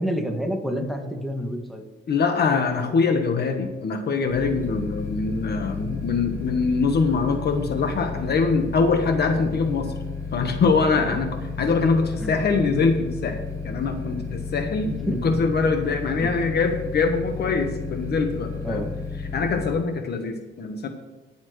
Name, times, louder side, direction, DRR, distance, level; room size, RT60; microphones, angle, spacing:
voice 1, 0.0-1.8 11.0-11.2 12.1-12.3 14.9-15.4 16.2-16.3 18.6-18.9, equal, ahead, 2 dB, 1.8 m, -29 dB
voice 2, 2.1-9.9 10.3-11.3 11.6-13.4 13.6-18.9 19.3-20.9, left 4 dB, 55° left, 6 dB, 1.3 m, -23 dB
sound 1, 4.3-19.7, left 4 dB, 15° left, 4.0 m, -33 dB
21.5 x 7.2 x 3.2 m, 1.2 s
cardioid pair, 90°, 20 cm